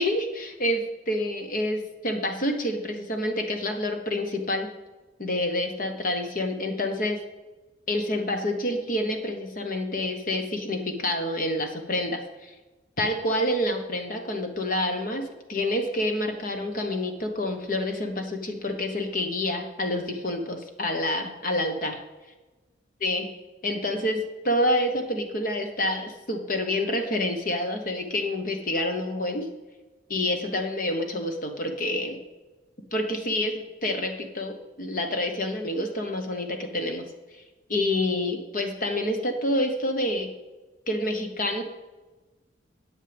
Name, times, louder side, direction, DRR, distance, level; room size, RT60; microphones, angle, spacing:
voice 1, 0.0-4.7 5.2-7.2 7.9-12.5 13.0-22.0 23.0-23.3 23.6-29.5 30.1-32.2 32.9-37.0 37.3-37.4 37.7-40.3 40.9-41.6, left 1 dB, 45° left, 4 dB, 1.2 m, -28 dB
13.5 x 9.2 x 3.5 m, 1.2 s
head